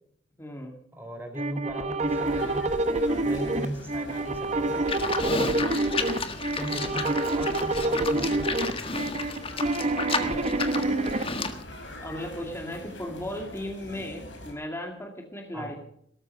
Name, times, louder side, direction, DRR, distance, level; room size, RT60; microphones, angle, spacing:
voice 1, 0.4-0.8 3.5-3.6 5.2-5.7 10.2-10.5 12.0-15.7, left 1 dB, 15° left, 1 dB, 2.2 m, -36 dB
voice 2, 0.9-2.7 3.2-4.8 6.5-8.9 15.5-15.7, right 1 dB, 10° right, 4 dB, 4.6 m, -38 dB
sound 1, 1.3-11.2, right 2 dB, 35° right, 1.2 m, -27 dB
sound 2, 2.1-14.5, left 1 dB, 75° left, 5.4 m, -44 dB
Livestock farm animals working animals, 4.9-11.6, left 4 dB, 30° left, 1.6 m, -32 dB
18.0 x 13.5 x 5.5 m, 0.70 s
head